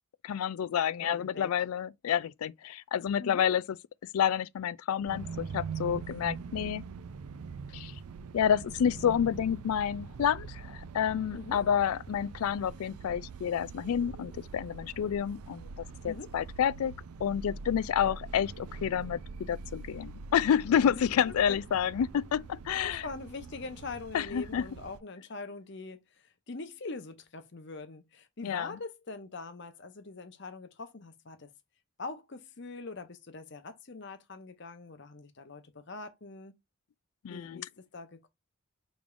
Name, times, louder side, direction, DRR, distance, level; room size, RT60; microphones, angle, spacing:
voice 1, 0.2-3.8 4.1-6.8 7.7-7.9 8.3-15.7 16.0-16.9 17.2-23.1 24.1-24.6 28.4-28.8 37.2-37.6, left 8 dB, 80° left, 0.3 m, -29 dB
voice 2, 1.0-1.5 3.2-3.4 11.3-11.6 16.0-16.3 18.0-18.2 20.8-21.6 22.8-31.5 32.0-36.5 37.3-38.3, left 3 dB, 50° left, 0.8 m, -43 dB
sound 1, 5.1-25.0, right 5 dB, 85° right, 0.4 m, -43 dB
5.1 x 3.4 x 2.5 m
head